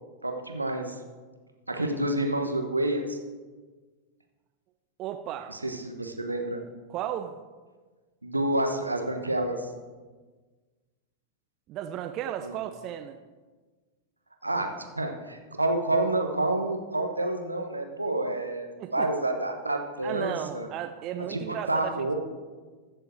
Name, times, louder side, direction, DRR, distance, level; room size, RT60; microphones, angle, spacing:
voice 1, 0.2-0.9 1.7-3.2 5.5-6.6 8.2-9.6 12.4-12.6 14.4-20.7 21.3-22.2, right 2 dB, 85° right, 5 dB, 1.2 m, -29 dB
voice 2, 5.0-5.6 6.9-7.4 11.7-13.2 18.8-19.1 20.0-22.2, right 11 dB, 35° right, 8 dB, 0.5 m, -35 dB
14.5 x 7.0 x 4.5 m, 1.4 s
figure-of-eight pair, 90°, 0 cm